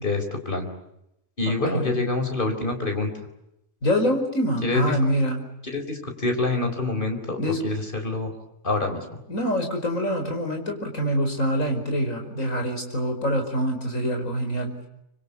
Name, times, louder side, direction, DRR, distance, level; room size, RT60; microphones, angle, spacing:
voice 1, 0.0-0.7 1.4-3.1 4.6-4.9 5.7-8.3 8.6-9.2, left 2 dB, 40° left, 5 dB, 4.6 m, -26 dB
voice 2, 1.5-2.0 3.8-5.5 7.4-7.6 9.3-14.7, equal, 75° left, 4 dB, 5.4 m, -25 dB
25.5 x 25.5 x 8.4 m, 0.83 s
omnidirectional pair, 1.4 m